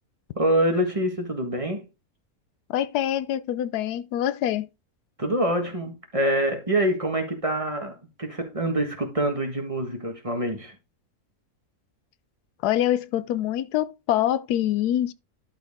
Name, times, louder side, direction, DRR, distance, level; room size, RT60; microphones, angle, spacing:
voice 1, 0.3-1.9 5.2-10.7, right 1 dB, 20° right, 1.5 m, -25 dB
voice 2, 2.7-4.7 12.6-15.1, left 12 dB, 90° left, 1.2 m, -25 dB
11.5 x 4.6 x 3.5 m
omnidirectional pair, 1.6 m